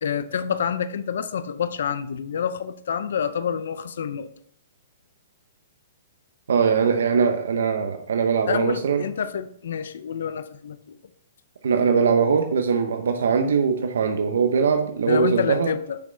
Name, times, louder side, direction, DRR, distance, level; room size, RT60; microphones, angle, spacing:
voice 1, 0.0-4.3 8.5-11.0 15.1-16.0, left 7 dB, 60° left, 12 dB, 0.5 m, -27 dB
voice 2, 6.5-9.0 11.6-15.7, right 6 dB, 75° right, 6 dB, 0.7 m, -21 dB
6.5 x 5.4 x 3.9 m, 0.65 s
hypercardioid pair, 180°, 0 cm